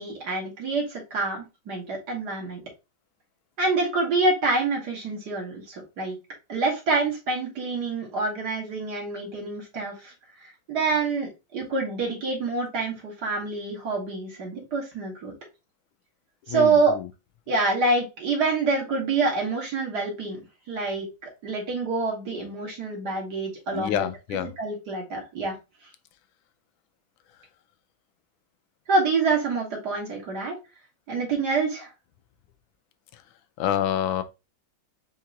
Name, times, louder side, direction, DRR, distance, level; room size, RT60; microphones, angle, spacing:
voice 1, 0.0-2.6 3.6-6.2 6.5-10.1 10.4-15.3 16.5-16.9 17.5-20.4 20.7-21.1 21.4-24.1 24.6-25.6 28.9-30.6 31.1-31.9, right 3 dB, 55° right, 2.0 m, -26 dB
voice 2, 16.5-17.1 23.7-24.5 33.1-33.2 33.6-34.2, left 10 dB, 90° left, 1.4 m, -27 dB
4.5 x 2.9 x 3.8 m
omnidirectional pair, 2.1 m